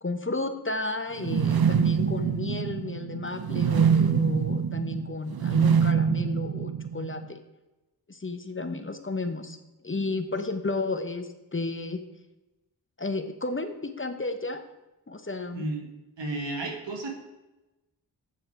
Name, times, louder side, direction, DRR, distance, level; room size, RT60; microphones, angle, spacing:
voice 1, 0.0-7.4 8.1-9.6 9.8-12.0 13.0-14.6 15.1-15.7, left 3 dB, 30° left, 8 dB, 0.9 m, -32 dB
sound 1, 1.2-7.2, right 7 dB, 60° right, 0.6 m, -25 dB
voice 2, 15.5-15.9 16.2-17.1, right 2 dB, 90° right, 2 dB, 1.6 m, -32 dB
8.4 x 6.4 x 4.5 m, 1.0 s
cardioid pair, 40°, 42 cm